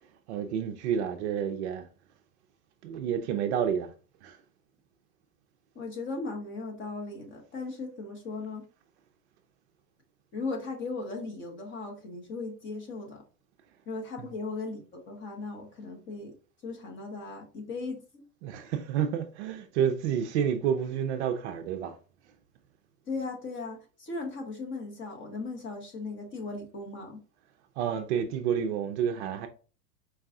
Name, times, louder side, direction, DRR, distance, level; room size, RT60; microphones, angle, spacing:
voice 1, 0.3-1.9 2.8-3.9 4.2-4.4 14.2-14.3 18.4-21.9 27.8-29.5, right 8 dB, 45° right, 0.5 m, -29 dB
voice 2, 5.7-8.7 10.3-13.2 13.9-16.3 16.6-18.2 23.1-27.2, left 3 dB, 25° left, 1.0 m, -37 dB
4.7 x 2.3 x 3.6 m
supercardioid pair, 135°, 49 cm